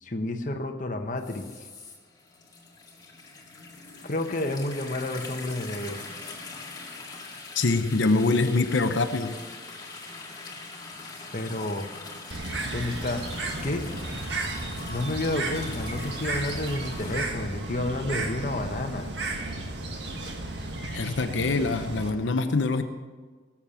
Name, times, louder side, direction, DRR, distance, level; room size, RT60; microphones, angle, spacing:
voice 1, 0.0-1.7 4.0-6.1 11.3-11.9 12.7-13.2 13.6-13.8 14.9-19.1, left 1 dB, 45° left, 5 dB, 1.1 m, -30 dB
sound 1, 1.2-17.3, left 3 dB, 20° left, 1.9 m, -42 dB
voice 2, 7.5-9.3 20.9-22.8, left 3 dB, 85° left, 7 dB, 0.8 m, -24 dB
Bird, 12.3-22.1, right 2 dB, 65° right, 1.7 m, -34 dB
18.0 x 7.2 x 7.1 m, 1.4 s
head